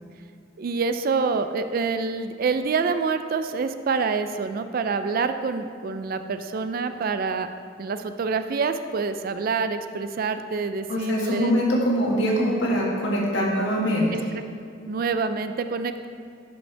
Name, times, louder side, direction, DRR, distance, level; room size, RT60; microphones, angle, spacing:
voice 1, 0.6-7.5 7.8-11.5 14.1-14.2 14.9-16.1, right 4 dB, 50° right, 9 dB, 0.4 m, -26 dB
voice 2, 10.9-14.3, equal, 75° left, -3 dB, 1.8 m, -23 dB
11.5 x 5.4 x 3.3 m, 2.3 s
head